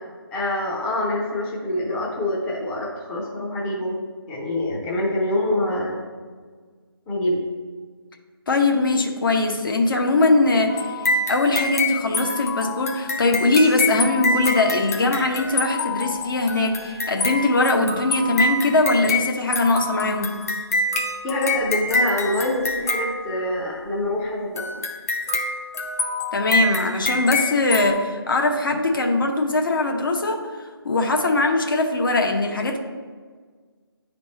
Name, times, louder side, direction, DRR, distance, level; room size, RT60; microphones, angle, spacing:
voice 1, 0.3-4.0 4.3-6.0 7.1-7.4 21.2-24.8, left 1 dB, 10° left, -5 dB, 0.6 m, -25 dB
voice 2, 8.5-20.3 26.3-30.4 30.8-32.8, left 2 dB, 55° left, 3 dB, 1.0 m, -21 dB
sound 1, 10.7-23.8 24.6-27.9, left 2 dB, 40° left, 0.8 m, -26 dB
9.3 x 3.4 x 4.0 m, 1.5 s
figure-of-eight pair, 155°, 13 cm